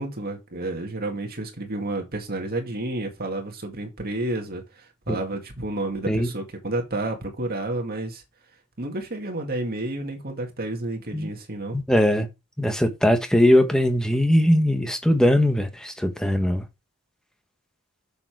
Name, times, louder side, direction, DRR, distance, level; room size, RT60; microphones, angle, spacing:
voice 1, 0.0-8.2 8.8-11.8, right 2 dB, 45° right, 2.0 m, -30 dB
voice 2, 11.7-12.3 12.6-16.6, left 1 dB, 5° left, 1.2 m, -20 dB
6.9 x 6.8 x 4.7 m
head